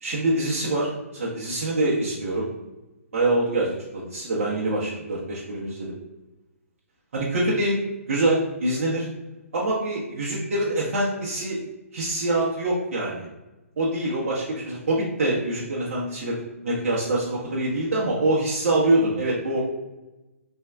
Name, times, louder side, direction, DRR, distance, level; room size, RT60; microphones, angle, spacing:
voice 1, 0.0-2.5 3.1-5.9 7.1-7.8 8.1-9.1 9.5-11.6 11.9-13.3 13.8-16.4 16.6-19.6, right 2 dB, 55° right, -6 dB, 0.8 m, -25 dB
3.5 x 2.2 x 3.3 m, 1.0 s
figure-of-eight pair, 135°, 8 cm